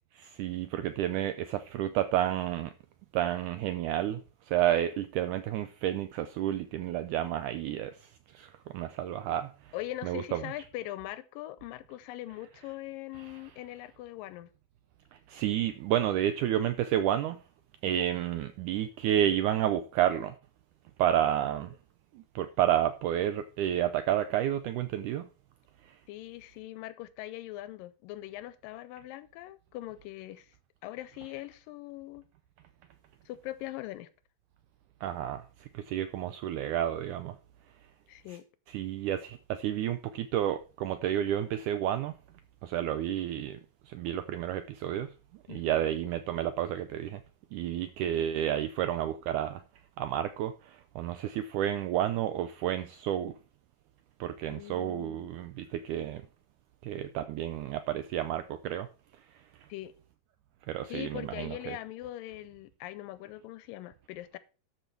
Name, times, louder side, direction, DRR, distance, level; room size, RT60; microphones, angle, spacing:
voice 1, 0.2-2.7 3.1-4.2 4.5-9.7 10.0-10.4 15.3-17.4 17.8-20.4 21.0-21.7 22.2-25.3 25.8-26.0 35.0-37.4 38.7-42.1 42.6-43.6 43.9-45.1 45.5-47.2 47.5-49.6 50.0-53.3 54.2-56.2 56.8-58.9 60.7-61.8, right 11 dB, 85° right, 1.8 m, -30 dB
voice 2, 9.7-14.5 26.1-30.5 30.8-32.2 33.3-34.1 38.1-38.5 45.5-45.8 54.5-55.3 59.7-59.9 60.9-64.4, left 15 dB, 80° left, 2.2 m, -41 dB
12.5 x 5.8 x 4.5 m
omnidirectional pair, 4.2 m